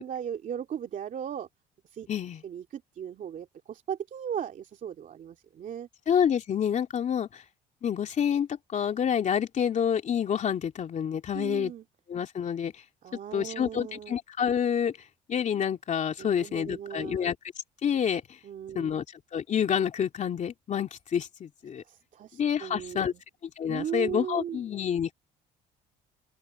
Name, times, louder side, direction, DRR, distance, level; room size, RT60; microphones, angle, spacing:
voice 1, 0.0-1.5 1.8-2.1 2.4-5.9 11.3-11.8 13.0-14.2 16.2-17.3 18.4-19.0 21.8-23.2 23.7-24.6, right 9 dB, 50° right, 2.8 m, -37 dB
voice 2, 2.1-2.4 6.1-7.4 7.8-11.7 12.1-12.7 13.3-14.9 15.3-17.3 17.8-18.2 18.7-19.0 19.3-21.8 22.4-23.1 23.4-25.1, left 8 dB, 45° left, 3.1 m, -28 dB
open air
cardioid pair, 110°, 17 cm